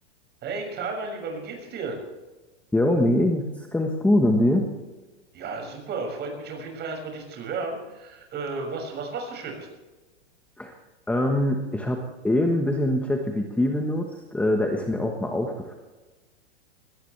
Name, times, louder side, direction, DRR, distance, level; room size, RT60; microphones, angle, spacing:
voice 1, 0.4-2.0 5.3-9.7, right 4 dB, 30° right, 2 dB, 6.5 m, -33 dB
voice 2, 2.7-4.7 10.6-10.7 11.1-15.7, left 1 dB, 5° left, 2 dB, 1.3 m, -23 dB
20.5 x 18.0 x 3.4 m, 1.2 s
hypercardioid pair, 135°, 34 cm